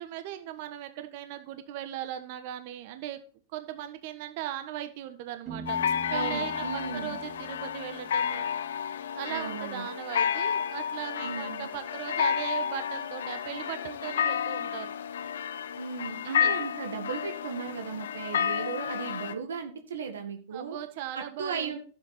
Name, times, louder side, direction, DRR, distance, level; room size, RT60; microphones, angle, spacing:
voice 1, 0.0-3.2 3.5-5.8 6.1-8.5 9.1-14.9 16.2-16.5 20.5-21.8, right 12 dB, 55° right, 9 dB, 1.3 m, -38 dB
Piano, 5.5-9.2, right 3 dB, 40° right, 3.6 m, -45 dB
sound 1, 5.7-19.3, left 8 dB, 80° left, 0.8 m, -31 dB
voice 2, 6.1-7.2 9.3-9.9 11.2-11.7 15.8-20.8 21.1-21.8, right 6 dB, 90° right, 4 dB, 1.8 m, -36 dB
12.0 x 7.9 x 4.3 m, 0.41 s
hypercardioid pair, 120°, 0 cm